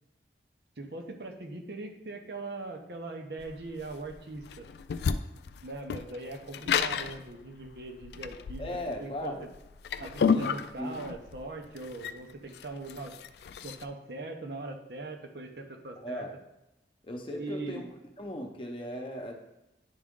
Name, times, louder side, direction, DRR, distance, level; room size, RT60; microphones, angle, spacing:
voice 1, 0.8-4.7 5.6-8.7 9.0-9.3 10.0-13.1 13.6-16.2 17.4-17.9, right 2 dB, 70° right, 4 dB, 0.9 m, -41 dB
sound 1, 3.4-13.8, left 6 dB, 70° left, 0.3 m, -32 dB
voice 2, 8.6-9.5 10.3-11.0 16.0-16.3 17.0-17.9 18.2-19.4, equal, 30° left, 3 dB, 0.8 m, -37 dB
10.5 x 3.6 x 3.7 m, 0.92 s
head